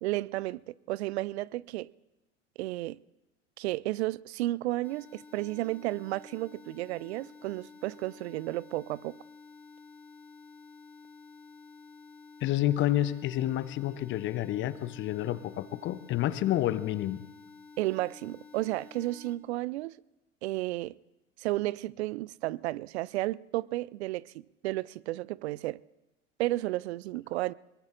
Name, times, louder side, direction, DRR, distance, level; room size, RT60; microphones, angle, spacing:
voice 1, 0.0-1.9 2.6-3.0 3.6-9.2 17.8-19.9 20.4-21.0 21.4-24.3 24.6-25.8 26.4-27.5, right 17 dB, 60° right, 0.5 m, -32 dB
sound 1, 4.8-19.3, left 4 dB, 5° left, 3.3 m, -52 dB
voice 2, 12.4-17.2, left 13 dB, 30° left, 0.7 m, -29 dB
24.0 x 22.0 x 2.5 m
figure-of-eight pair, 80°, 38 cm